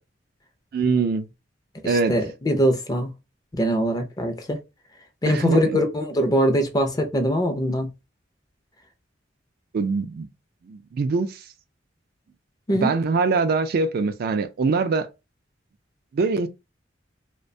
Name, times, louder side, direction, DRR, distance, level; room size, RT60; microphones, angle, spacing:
voice 1, 0.7-1.3 1.8-2.2 5.3-5.8 9.7-10.3 10.7-11.4 12.7-15.1 16.1-16.5, right 4 dB, 55° right, 0.3 m, -23 dB
voice 2, 1.8-3.1 3.5-4.6 5.2-7.9 12.7-12.9, equal, 20° left, 0.5 m, -22 dB
2.4 x 2.2 x 2.6 m
head